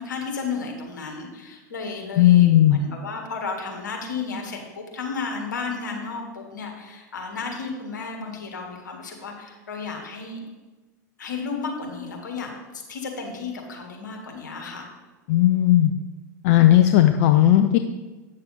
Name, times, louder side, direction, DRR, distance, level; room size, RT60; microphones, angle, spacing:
voice 1, 0.0-10.4 11.2-12.5 12.9-14.9, left 4 dB, 75° left, 2 dB, 1.7 m, -33 dB
voice 2, 2.2-2.8 15.3-15.9 16.4-17.8, left 13 dB, 55° left, 7 dB, 0.5 m, -16 dB
8.5 x 6.6 x 4.0 m, 1.2 s
figure-of-eight pair, 90°, 10 cm